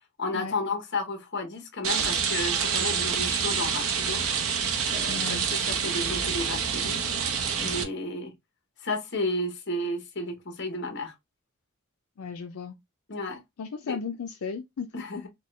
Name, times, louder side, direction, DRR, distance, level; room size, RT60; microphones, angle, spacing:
voice 1, 0.2-4.3 4.9-5.4 5.7-7.3 7.6-8.3 8.8-11.1 13.1-13.4 13.9-14.0 14.9-15.3, left 2 dB, 50° left, 1.0 m, -32 dB
Rain, 1.8-7.8, right 6 dB, 70° right, 0.8 m, -27 dB
voice 2, 5.1-5.5 12.2-12.8 13.6-14.9, left 5 dB, 80° left, 0.5 m, -35 dB
4.5 x 2.3 x 3.1 m
head